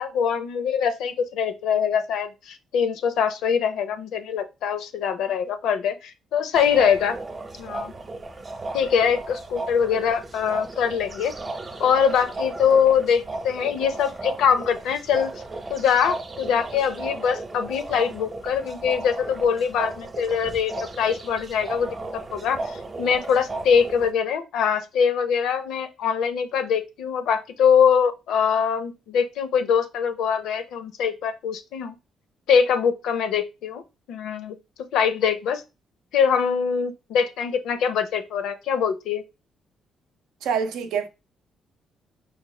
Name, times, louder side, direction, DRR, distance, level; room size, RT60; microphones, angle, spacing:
voice 1, 0.0-7.2 7.6-7.9 8.7-11.3 11.8-15.3 15.7-31.9 32.5-33.8 34.1-34.5 34.9-35.6 36.1-39.2, left 7 dB, 85° left, 0.6 m, -23 dB
sound 1, 6.5-24.1, right 2 dB, 30° right, 0.8 m, -35 dB
voice 2, 40.4-41.1, right 6 dB, 85° right, 0.5 m, -25 dB
4.9 x 2.2 x 3.2 m
cardioid pair, 90°, 0 cm